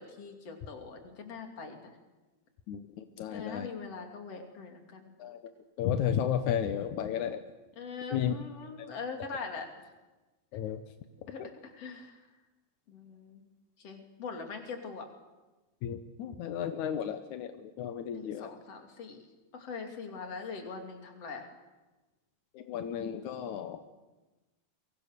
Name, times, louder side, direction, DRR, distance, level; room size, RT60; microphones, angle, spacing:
voice 1, 0.0-2.0 3.3-5.2 7.8-9.7 11.3-12.3 12.9-13.4 13.8-15.1 18.1-19.3 19.5-21.5, left 5 dB, 55° left, 4 dB, 3.9 m, -42 dB
voice 2, 2.7-3.7 5.2-5.4 5.8-7.4 8.1-8.3 8.8-8.9 10.5-10.8 11.4-11.5 15.8-18.5 22.5-23.8, left 9 dB, 85° left, 8 dB, 2.5 m, -33 dB
30.0 x 23.5 x 6.8 m, 1.2 s
omnidirectional pair, 3.3 m